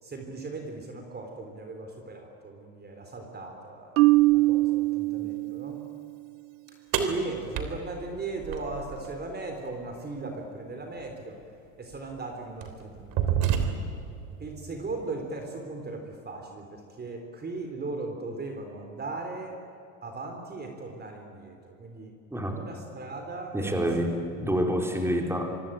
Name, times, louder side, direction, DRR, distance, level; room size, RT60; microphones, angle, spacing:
voice 1, 0.0-5.8 6.7-11.4 11.8-13.5 14.4-19.6 20.0-22.2 22.4-24.1 24.7-25.0, right 3 dB, 25° right, 4 dB, 4.0 m, -38 dB
Marimba xylophone, 4.0-6.0, right 20 dB, 85° right, 0.6 m, -22 dB
sound 1, 6.9-9.1 11.0-11.1 11.9-12.1 12.6-14.1, right 8 dB, 60° right, 3.5 m, -29 dB
voice 2, 23.5-25.6, equal, 5° right, 2 dB, 4.5 m, -27 dB
25.5 x 24.0 x 9.1 m, 2.7 s
supercardioid pair, 105°, 39 cm